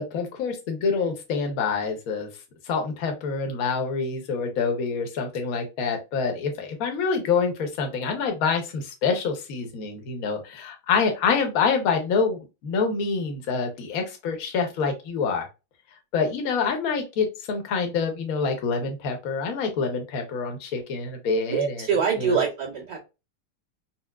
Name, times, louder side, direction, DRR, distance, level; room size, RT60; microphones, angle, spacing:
voice 1, 0.0-2.3 2.7-15.5 16.1-21.9 22.2-22.4, left 5 dB, 60° left, 4 dB, 0.9 m, -26 dB
voice 2, 21.5-23.0, right 6 dB, 50° right, -11 dB, 1.7 m, -24 dB
4.2 x 2.1 x 2.2 m, 0.27 s
omnidirectional pair, 2.3 m